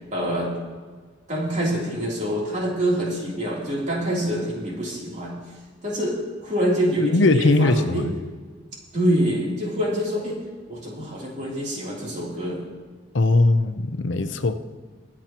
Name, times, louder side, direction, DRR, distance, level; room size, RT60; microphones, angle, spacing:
voice 1, 0.1-0.5 1.3-5.4 5.8-8.1 8.9-10.4 10.7-12.6, equal, 40° right, -4 dB, 3.2 m, -25 dB
voice 2, 7.0-8.1 13.1-14.6, left 2 dB, 70° left, 8 dB, 0.7 m, -20 dB
23.5 x 8.6 x 3.0 m, 1.4 s
head